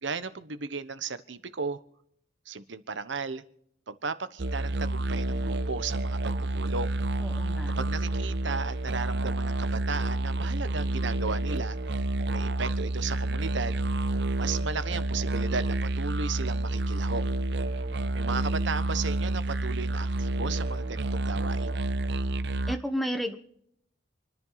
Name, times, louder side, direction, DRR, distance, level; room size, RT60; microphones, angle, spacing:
voice 1, 0.0-1.8 2.5-3.4 3.9-7.0 7.8-11.8 12.3-13.7 14.4-17.2 18.1-21.8, right 4 dB, 80° right, 13 dB, 1.1 m, -35 dB
sound 1, 4.4-22.8, right 2 dB, 60° right, 0.6 m, -29 dB
voice 2, 7.2-7.8 22.7-23.4, equal, ahead, 5 dB, 1.2 m, -32 dB
28.0 x 10.5 x 4.0 m, 0.71 s
head